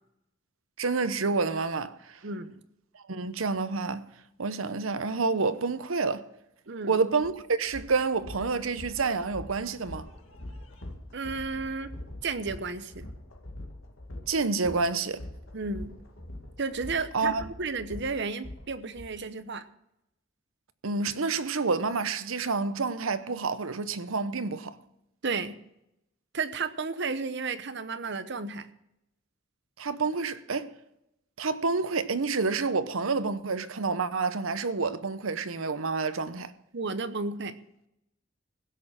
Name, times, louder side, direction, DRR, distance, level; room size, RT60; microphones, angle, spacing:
voice 1, 0.8-2.2 3.1-4.1 4.4-6.2 6.9-10.1 14.3-15.2 17.1-17.5 20.8-24.8 29.8-30.7 31.4-36.5, right 4 dB, 85° right, 0.9 m, -28 dB
voice 2, 2.2-2.6 6.7-7.0 11.1-11.9 12.2-13.1 15.5-15.9 16.6-19.6 25.2-25.6 26.3-28.7 36.7-37.5, right 4 dB, 60° right, 0.9 m, -33 dB
sound 1, 7.2-7.3 7.7-19.1, left 1 dB, 70° left, 2.2 m, -43 dB
16.0 x 6.6 x 7.3 m
head